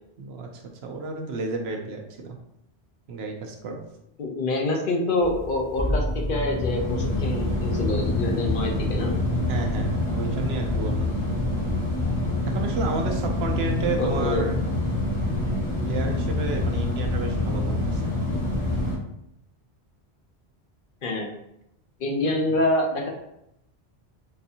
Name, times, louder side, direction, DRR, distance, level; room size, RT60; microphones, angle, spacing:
voice 1, 0.2-2.4 3.1-3.8 9.5-11.1 12.5-14.6 15.8-18.1, right 4 dB, 75° right, 3 dB, 0.8 m, -31 dB
voice 2, 4.2-9.1 14.0-14.4 21.0-21.3 22.0-23.1, left 2 dB, 60° left, 0 dB, 0.8 m, -26 dB
sound 1, 5.2-19.0, left 2 dB, 30° left, 1.1 m, -26 dB
4.0 x 2.6 x 2.7 m, 0.81 s
omnidirectional pair, 1.1 m